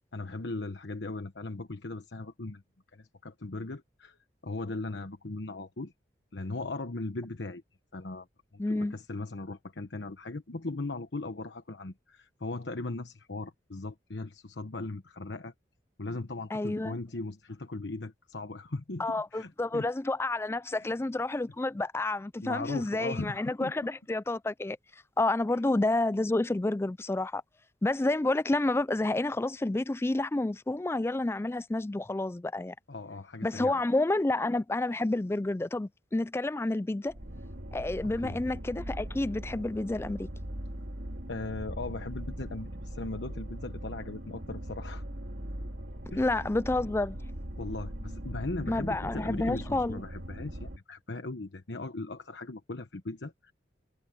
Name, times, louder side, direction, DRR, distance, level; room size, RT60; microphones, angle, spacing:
voice 1, 0.1-2.6 2.9-4.2 4.4-5.9 6.3-7.6 7.9-8.3 8.7-15.5 16.0-19.9 20.7-21.0 22.4-23.9 25.5-25.6 32.9-33.8 38.2-38.4 41.3-45.0 46.1-46.4 47.6-53.5, left 2 dB, 85° left, 1.1 m, -38 dB
voice 2, 8.6-8.9 16.5-17.0 19.0-24.8 25.2-27.4 27.8-32.7 33.4-37.1 37.7-40.3 46.2-47.2 48.7-50.0, left 2 dB, 15° left, 0.3 m, -29 dB
sound 1, 37.1-50.8, equal, 85° right, 2.6 m, -40 dB
head